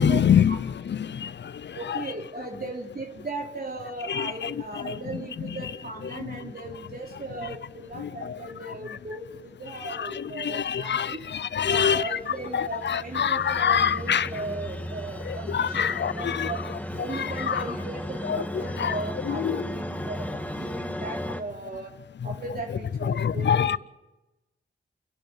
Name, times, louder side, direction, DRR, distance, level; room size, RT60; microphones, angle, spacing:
voice 1, 0.0-2.0 4.1-4.3 4.9-5.0 6.1-6.4 8.0-8.4 10.0-12.2 12.5-14.3 15.2-16.5 17.5-17.6 18.3-18.4 18.8-19.0 19.2-19.6 23.0-23.8, left 8 dB, 65° left, 0.7 m, -25 dB
voice 2, 1.7-11.2 11.6-16.6 17.0-21.9 22.2-23.8, right 2 dB, 50° right, 3.2 m, -37 dB
sound 1, 11.9-21.4, equal, 5° left, 1.6 m, -35 dB
28.5 x 11.5 x 9.3 m
cardioid pair, 45°, 20 cm